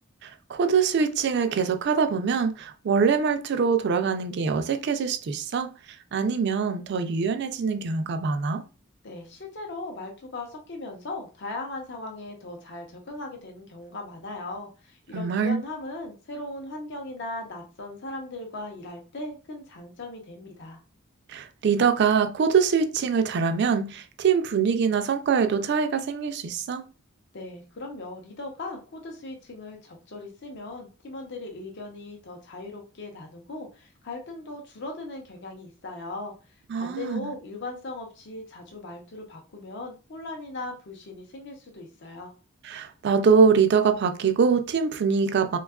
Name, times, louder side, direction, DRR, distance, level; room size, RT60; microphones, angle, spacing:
voice 1, 0.2-5.7 6.1-8.6 15.1-15.6 21.3-26.8 36.7-37.3 42.6-45.6, right 5 dB, 55° right, 0.3 m, -23 dB
voice 2, 9.0-20.8 27.3-36.3 36.8-42.3, left 2 dB, 55° left, 0.6 m, -38 dB
3.4 x 2.3 x 2.3 m
head